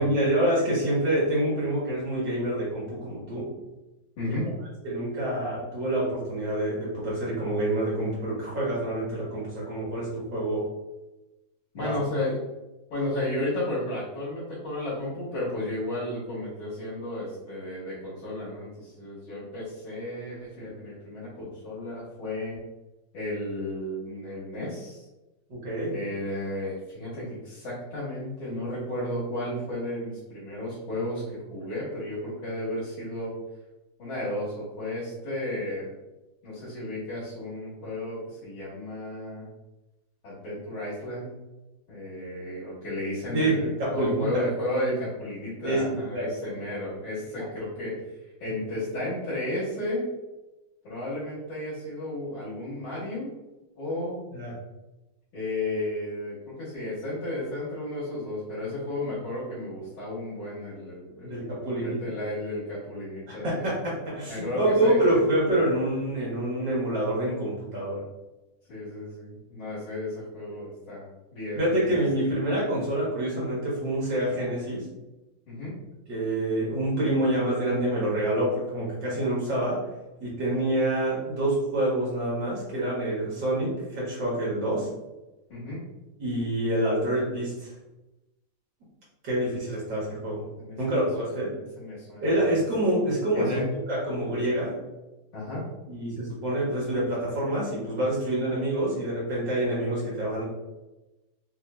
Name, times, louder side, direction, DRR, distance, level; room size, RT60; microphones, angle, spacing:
voice 1, 0.0-3.5 4.2-4.3 4.8-10.7 11.8-12.0 25.5-25.9 43.3-44.4 45.6-46.3 54.3-54.5 61.2-62.1 63.3-68.0 71.5-74.8 76.1-79.8 80.2-84.9 86.2-87.7 89.2-90.4 90.8-91.5 92.2-93.6 93.9-94.8 95.9-100.4, right 1 dB, 65° right, -6 dB, 2.1 m, -27 dB
voice 2, 4.2-4.5 11.7-12.4 12.9-22.6 23.1-25.0 25.9-33.3 34.0-35.9 36.4-39.5 40.2-41.4 41.9-47.9 48.4-50.1 50.8-53.3 53.8-54.2 55.3-63.8 64.3-65.2 68.7-71.1 71.3-72.3 75.5-75.7 85.5-85.8 89.4-89.7 90.6-91.4 91.8-92.6 93.3-93.7 95.3-95.7, left 1 dB, 80° left, -9 dB, 2.1 m, -33 dB
5.3 x 2.7 x 2.3 m, 1.0 s
omnidirectional pair, 2.2 m